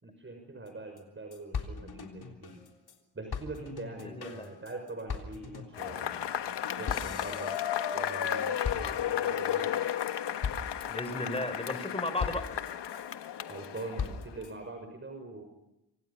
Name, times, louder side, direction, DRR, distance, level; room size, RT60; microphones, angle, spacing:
voice 1, 0.0-2.6 3.1-6.2 6.7-7.6 7.9-9.7 13.5-15.4, right 2 dB, 30° right, 4 dB, 6.0 m, -43 dB
sound 1, 0.7-0.8 1.0-1.1 1.3-3.0 3.3-8.3 8.6-9.3 9.8-10.1 10.4-10.9 11.3-11.8 12.2-13.1 13.6-14.5, left 6 dB, 65° left, 3.7 m, -39 dB
voice 2, 4.0-4.5 10.9-12.5, left 1 dB, 15° left, 10 dB, 4.4 m, -35 dB
Cheering / Applause / Crowd, 5.7-14.4, left 9 dB, 80° left, 1.4 m, -33 dB
27.0 x 26.5 x 5.7 m, 0.95 s
cardioid pair, 105°, 41 cm